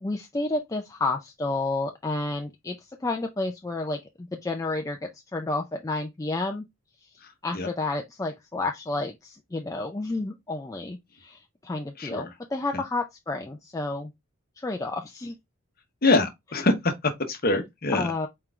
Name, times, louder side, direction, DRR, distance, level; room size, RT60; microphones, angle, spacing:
voice 1, 0.0-6.6 7.4-14.1 14.6-15.4 17.9-18.3, left 2 dB, 15° left, 0.3 m, -31 dB
voice 2, 12.0-12.3 12.7-12.8 16.0-18.1, left 2 dB, 40° left, 0.8 m, -24 dB
4.4 x 3.7 x 2.4 m
head